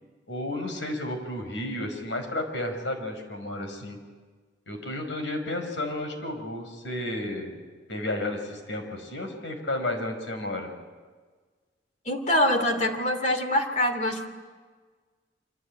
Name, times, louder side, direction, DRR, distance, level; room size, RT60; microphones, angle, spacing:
voice 1, 0.3-4.0 4.7-7.6 7.9-10.7, left 1 dB, 85° left, 6 dB, 5.4 m, -32 dB
voice 2, 12.1-14.3, left 1 dB, 40° left, 6 dB, 2.7 m, -24 dB
26.0 x 25.5 x 8.9 m, 1.5 s
head